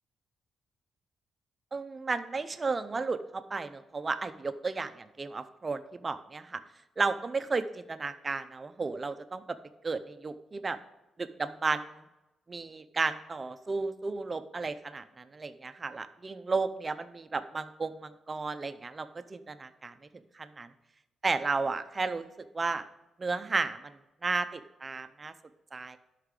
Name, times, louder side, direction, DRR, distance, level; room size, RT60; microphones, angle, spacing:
voice 1, 1.7-6.6 7.0-9.4 9.8-10.8 11.2-12.0 12.5-19.9 20.4-20.7 21.2-22.3 22.5-22.8 23.2-23.9 24.2-25.3 25.7-26.0, right 4 dB, 25° right, 11 dB, 0.5 m, -33 dB
11.5 x 5.8 x 3.7 m, 0.98 s
cardioid pair, 160°, 0 cm